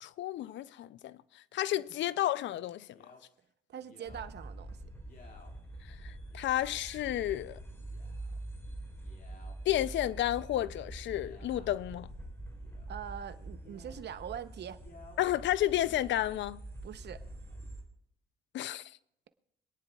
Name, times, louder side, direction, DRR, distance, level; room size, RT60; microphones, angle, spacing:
voice 1, 0.0-1.2 1.5-3.0 5.9-7.6 9.7-12.1 15.2-16.6 18.5-18.8, left 13 dB, 70° left, 0.4 m, -31 dB
Male speech man speaking, 1.8-2.2 2.9-3.2 3.8-4.3 5.0-5.5 6.3-6.5 7.0-7.4 7.8-8.4 8.9-9.5 10.9-11.9 12.5-13.0 13.6-14.0 14.7-15.2 15.7-16.3 17.0-17.6, left 3 dB, 45° left, 2.3 m, -58 dB
voice 2, 3.7-4.8 12.9-14.8 16.8-17.2, right 9 dB, 60° right, 0.8 m, -43 dB
sound 1, 4.1-17.8, right 1 dB, 15° left, 3.1 m, -45 dB
25.5 x 9.8 x 2.3 m
cardioid pair, 90°, 20 cm